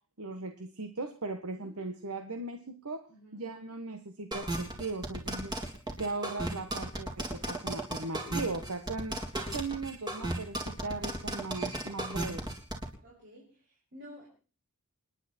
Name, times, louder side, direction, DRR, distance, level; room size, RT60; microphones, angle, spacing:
voice 1, 0.2-3.0 3.3-5.6 6.0-9.2 9.5-12.4, right 3 dB, 80° right, 7 dB, 1.5 m, -38 dB
voice 2, 3.1-3.4 8.8-9.0 9.3-9.6 13.0-14.3, equal, 55° right, -4 dB, 6.9 m, -53 dB
sound 1, 4.3-12.9, right 1 dB, 20° right, 3.4 m, -35 dB
28.0 x 10.5 x 4.5 m, 0.39 s
head